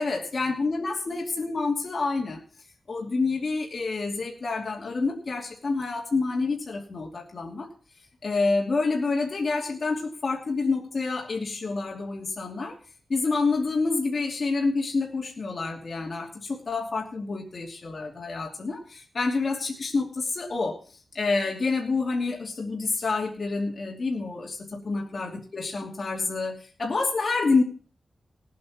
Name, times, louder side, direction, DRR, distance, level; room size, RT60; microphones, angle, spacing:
voice 1, 0.0-2.4 2.9-7.7 8.2-12.8 13.1-20.8 21.1-27.6, left 3 dB, 50° left, 0 dB, 2.7 m, -28 dB
18.5 x 8.5 x 4.4 m, 0.39 s
wide cardioid pair, 145°, 0 cm